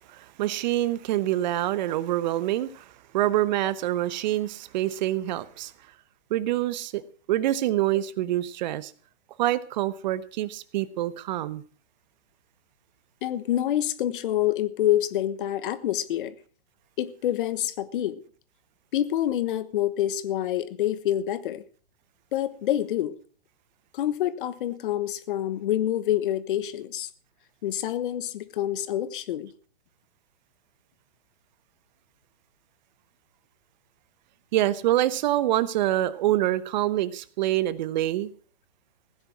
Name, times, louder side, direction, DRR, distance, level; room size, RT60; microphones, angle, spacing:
voice 1, 0.1-2.9 3.1-5.7 6.3-7.0 7.3-8.9 9.4-11.6 34.5-38.3, right 14 dB, 45° right, 1.0 m, -26 dB
voice 2, 13.2-16.3 17.0-18.2 18.9-21.6 22.3-23.1 23.9-27.1 27.6-29.5, left 12 dB, 50° left, 1.3 m, -27 dB
16.0 x 10.0 x 6.0 m
hypercardioid pair, 140°, 33 cm